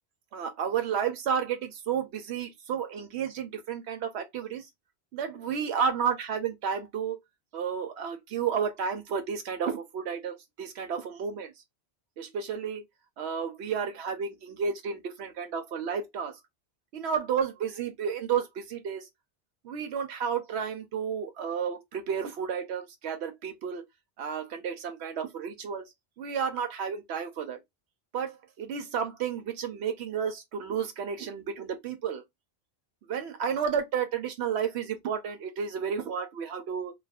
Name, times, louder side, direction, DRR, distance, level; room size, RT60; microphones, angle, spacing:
voice 1, 0.3-4.7 5.1-7.2 7.5-11.5 12.2-12.8 13.2-16.4 16.9-19.1 19.6-23.8 24.2-25.8 26.2-27.6 28.1-32.2 33.1-36.9, right 7 dB, 85° right, 0.9 m, -32 dB
2.5 x 2.3 x 3.4 m
omnidirectional pair, 1.1 m